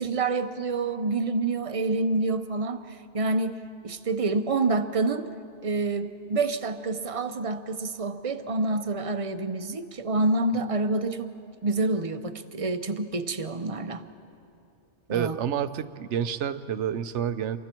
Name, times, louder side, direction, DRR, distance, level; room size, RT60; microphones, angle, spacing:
voice 1, 0.0-5.3 5.6-11.3 11.6-14.0 15.1-15.4, right 3 dB, 35° right, 9 dB, 0.8 m, -27 dB
voice 2, 15.1-17.6, right 9 dB, 80° right, 12 dB, 1.0 m, -29 dB
29.0 x 24.0 x 4.5 m, 2.6 s
omnidirectional pair, 1.2 m